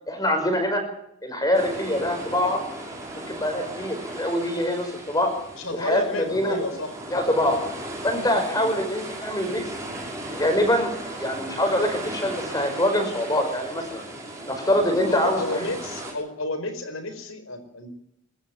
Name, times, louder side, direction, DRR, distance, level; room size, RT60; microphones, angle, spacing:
voice 1, 0.1-0.8 1.2-2.6 3.1-5.3 5.7-6.6 7.1-7.6 8.0-9.7 10.3-10.9 11.2-14.0 14.5-15.7, left 1 dB, 15° left, 5 dB, 5.6 m, -24 dB
sound 1, 1.5-16.1, right 1 dB, 15° right, 6.1 m, -37 dB
voice 2, 5.6-6.9 7.4-7.7 8.5-8.7 14.9-17.9, left 2 dB, 70° left, 9 dB, 4.8 m, -31 dB
23.5 x 13.5 x 9.4 m, 0.75 s
head